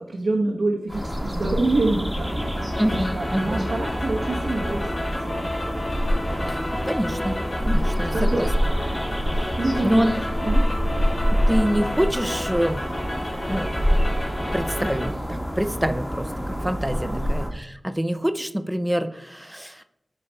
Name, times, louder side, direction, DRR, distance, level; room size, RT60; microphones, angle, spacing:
voice 1, 0.0-5.5 6.3-6.6 8.1-8.5 9.6-10.7 16.9-17.2, right 2 dB, 80° right, -2 dB, 1.0 m, -27 dB
sound 1, 0.9-17.5, equal, 5° left, 1.5 m, -26 dB
sound 2, 2.2-15.1, left 1 dB, 55° left, 2.8 m, -32 dB
voice 2, 2.8-3.7 6.5-7.3 7.6-8.5 9.8-10.1 11.5-12.8 13.5-13.7 14.5-19.8, equal, 10° right, 10 dB, 0.6 m, -26 dB
9.9 x 3.3 x 4.4 m, 0.81 s
cardioid pair, 45°, 0 cm